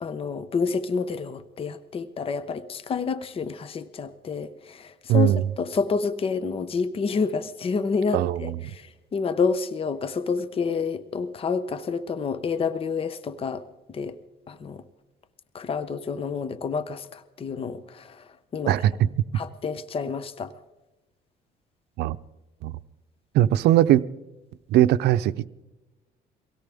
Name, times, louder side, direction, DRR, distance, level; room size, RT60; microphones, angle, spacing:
voice 1, 0.0-14.2 14.5-14.8 15.5-18.8 19.3-20.6, left 5 dB, 35° left, 0.8 m, -29 dB
voice 2, 5.1-5.4 8.1-8.5 18.7-19.1 22.0-22.2 22.6-22.7 23.3-24.0 24.7-25.3, right 12 dB, 80° right, 0.6 m, -20 dB
24.0 x 17.0 x 3.5 m
cardioid pair, 110°, 17 cm